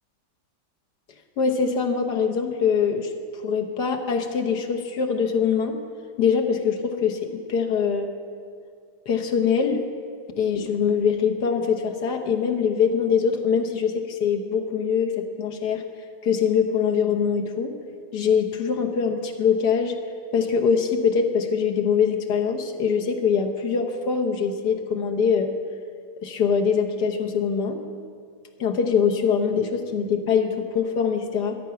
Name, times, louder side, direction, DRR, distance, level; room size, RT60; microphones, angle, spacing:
voice 1, 1.4-3.1 3.4-5.8 6.2-8.1 9.1-9.8 10.4-15.8 16.2-17.7 18.1-19.9 20.3-25.5 26.2-27.8 28.6-31.6, left 6 dB, 75° left, 4 dB, 1.6 m, -23 dB
13.5 x 11.5 x 5.8 m, 2.2 s
omnidirectional pair, 1.8 m